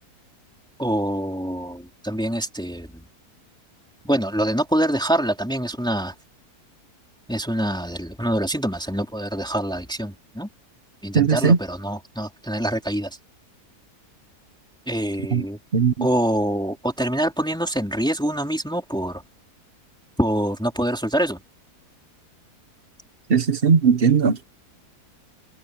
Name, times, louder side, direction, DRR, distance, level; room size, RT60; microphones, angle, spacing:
voice 1, 0.8-3.1 4.0-6.1 7.3-10.5 11.0-13.2 14.9-15.6 16.0-19.2 20.2-21.4, right 1 dB, 5° left, 3.7 m, -25 dB
voice 2, 11.1-11.6 15.3-15.4 15.7-16.1 23.3-24.4, right 6 dB, 40° right, 1.3 m, -18 dB
omnidirectional pair, 1.7 m